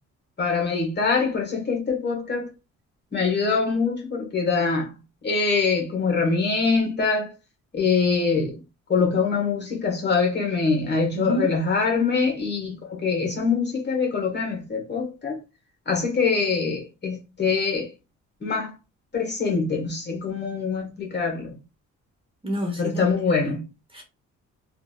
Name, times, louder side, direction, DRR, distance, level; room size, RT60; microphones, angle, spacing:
voice 1, 0.4-2.5 3.1-4.9 5.2-7.3 7.7-8.6 8.9-15.4 15.8-17.9 18.4-18.7 19.1-21.6 22.8-23.7, left 4 dB, 35° left, 1.5 m, -24 dB
voice 2, 11.1-11.5 22.4-23.5 23.9-24.0, equal, 15° right, 1.1 m, -29 dB
3.1 x 2.6 x 2.4 m
cardioid pair, 90°, 30 cm